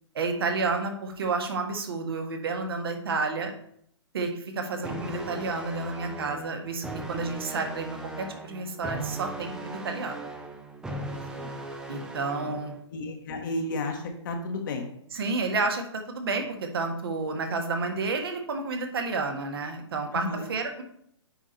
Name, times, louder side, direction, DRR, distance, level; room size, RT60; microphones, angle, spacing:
voice 1, 0.1-3.5 4.1-7.9 8.2-10.2 11.9-12.7 15.1-20.8, right 3 dB, 55° right, 5 dB, 1.6 m, -30 dB
sound 1, 4.8-12.8, right 1 dB, 5° right, 0.8 m, -38 dB
voice 2, 12.9-14.9 20.1-20.5, left 2 dB, 45° left, 3 dB, 1.4 m, -33 dB
8.8 x 5.1 x 4.1 m, 0.69 s
figure-of-eight pair, 125°, 15 cm